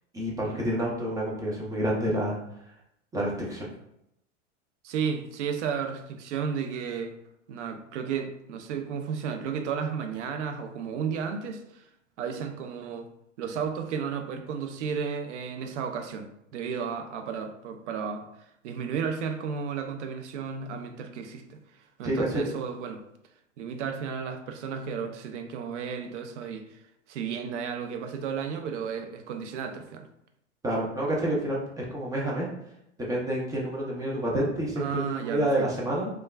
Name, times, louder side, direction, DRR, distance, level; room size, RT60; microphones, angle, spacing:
voice 1, 0.1-2.4 3.1-3.7 22.0-22.4 30.6-32.5 33.0-36.1, right 1 dB, 10° right, -4 dB, 0.3 m, -28 dB
voice 2, 4.8-7.2 7.5-11.9 12.2-13.1 13.4-18.3 18.6-21.6 22.0-23.0 23.6-30.1 34.8-35.7, right 6 dB, 70° right, 6 dB, 0.5 m, -33 dB
3.1 x 2.2 x 2.2 m, 0.78 s
hypercardioid pair, 100°, 37 cm